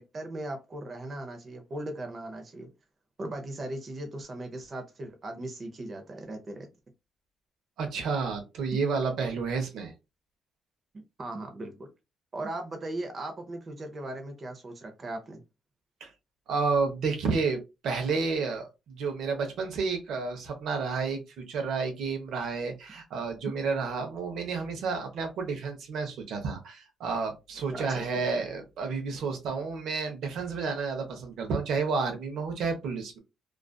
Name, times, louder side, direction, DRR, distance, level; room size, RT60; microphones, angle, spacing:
voice 1, 0.0-2.7 3.2-6.7 8.7-8.8 10.9-11.9 12.3-15.4 27.8-28.2, right 1 dB, 40° right, 5 dB, 0.6 m, -38 dB
voice 2, 7.8-9.9 16.0-16.1 16.5-33.2, right 4 dB, 75° right, 5 dB, 0.7 m, -31 dB
2.4 x 2.4 x 2.2 m, 0.24 s
cardioid pair, 90°, 0 cm